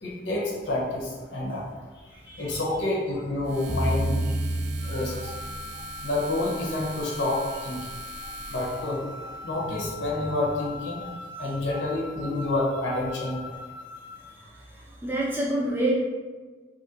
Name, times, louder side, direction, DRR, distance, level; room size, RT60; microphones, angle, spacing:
voice 1, 0.0-1.6 2.4-4.2 4.9-5.3 5.7-7.8 8.5-11.1 11.4-13.5, left 2 dB, 70° left, -4 dB, 0.7 m, -29 dB
voice 2, 2.1-2.6 4.4-4.6 14.2-16.0, right 1 dB, 10° right, -5 dB, 0.4 m, -29 dB
sound 1, 3.4-9.0, right 4 dB, 85° right, 0.4 m, -43 dB
sound 2, 3.7-6.1, right 1 dB, 25° right, 0.8 m, -29 dB
sound 3, 4.8-14.4, left 3 dB, 35° left, 0.6 m, -41 dB
2.8 x 2.5 x 2.8 m, 1.3 s
head